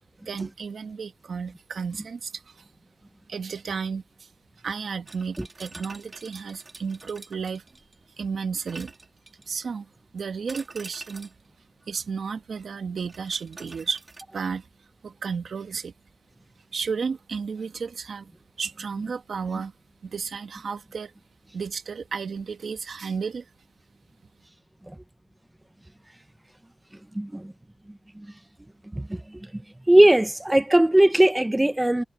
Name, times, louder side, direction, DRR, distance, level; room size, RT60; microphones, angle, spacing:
voice 1, 0.2-2.6 3.3-4.3 4.6-7.6 8.2-8.9 9.5-11.3 11.9-14.0 14.3-14.6 15.0-15.9 16.7-18.3 18.6-19.7 20.0-21.1 21.5-23.5, right 5 dB, 70° right, 1.2 m, -33 dB
sound 1, 5.1-8.1 8.7-9.6 10.5-11.5 13.0-14.2, right 3 dB, 30° right, 2.7 m, -46 dB
voice 2, 27.1-27.5 28.2-28.3 28.9-29.2 29.5-29.6 29.9-32.0, right 1 dB, 10° right, 0.8 m, -19 dB
wide cardioid pair, 140°, 0 cm